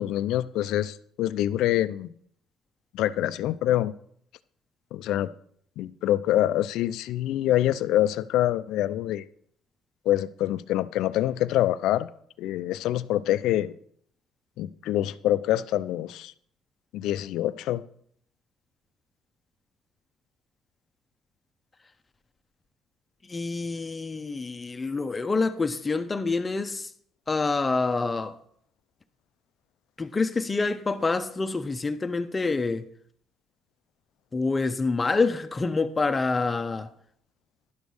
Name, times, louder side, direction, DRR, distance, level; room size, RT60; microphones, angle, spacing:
voice 1, 0.0-2.1 2.9-3.9 4.9-5.3 5.8-9.3 10.1-12.1 12.4-13.7 14.6-16.3 16.9-17.8, left 13 dB, 75° left, 0.4 m, -25 dB
voice 2, 23.3-26.9 27.3-28.4 30.0-32.9 34.3-36.9, left 3 dB, 25° left, 0.7 m, -27 dB
11.0 x 5.2 x 6.3 m
cardioid pair, 90°, 0 cm